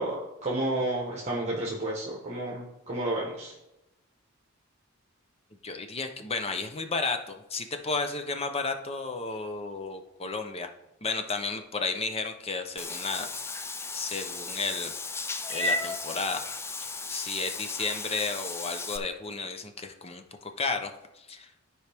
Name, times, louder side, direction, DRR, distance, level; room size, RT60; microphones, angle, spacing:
voice 1, 0.0-3.5, right 1 dB, 30° right, -4 dB, 1.2 m, -31 dB
voice 2, 5.6-10.7 11.0-13.3 13.5-13.6 13.9-14.9 15.5-16.4 17.1-21.5, left 4 dB, 30° left, 6 dB, 0.7 m, -33 dB
Meow / Water / Bathtub (filling or washing), 12.8-19.0, left 3 dB, 10° left, 0.3 m, -34 dB
12.5 x 4.7 x 3.5 m, 0.94 s
head